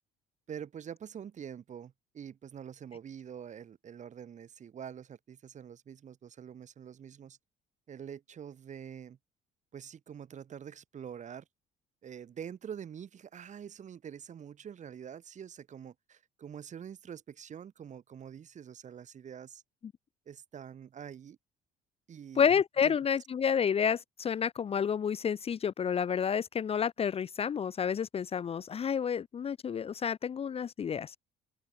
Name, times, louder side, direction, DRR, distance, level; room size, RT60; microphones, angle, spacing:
voice 1, 0.5-7.4 7.9-9.2 9.7-11.5 12.0-19.6 20.3-21.4 22.1-22.5 22.8-23.0, right 8 dB, 45° right, 4.1 m, -45 dB
voice 2, 22.4-31.1, left 7 dB, 35° left, 0.8 m, -30 dB
cardioid pair, 110°, 17 cm